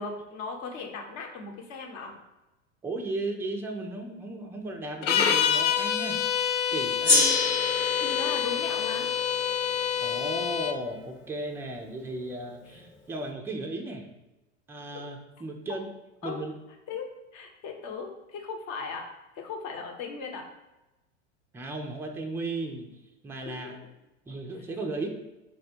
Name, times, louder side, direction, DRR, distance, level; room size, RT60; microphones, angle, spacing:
voice 1, 0.0-2.1 7.1-7.5 8.0-9.1 16.2-16.4 16.9-17.1 17.3-19.1 19.3-20.5 23.6-23.7, left 4 dB, 45° left, 2 dB, 0.9 m, -37 dB
voice 2, 2.8-6.2 6.7-7.2 10.0-14.1 14.7-15.9 16.2-16.6 21.5-22.9 23.2-23.8 24.3-25.1, right 2 dB, 5° right, 2 dB, 0.3 m, -35 dB
sound 1, 5.0-10.8, left 9 dB, 85° left, 0.5 m, -27 dB
Gong, 7.0-11.8, left 3 dB, 20° left, 0.9 m, -29 dB
4.4 x 2.1 x 4.3 m, 1.0 s
hypercardioid pair, 90°, 36 cm